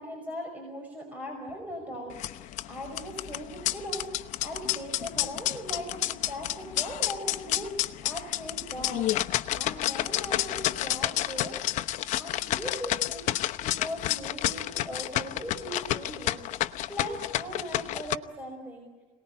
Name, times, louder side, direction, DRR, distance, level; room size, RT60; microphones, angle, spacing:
voice 1, 0.0-4.1 4.4-13.3 13.6-16.4 16.9-18.9, equal, 10° right, 1 dB, 5.5 m, -39 dB
sound 1, 2.1-18.1, left 14 dB, 70° left, 0.9 m, -30 dB
27.0 x 19.0 x 9.8 m, 1.4 s
cardioid pair, 130°, 13 cm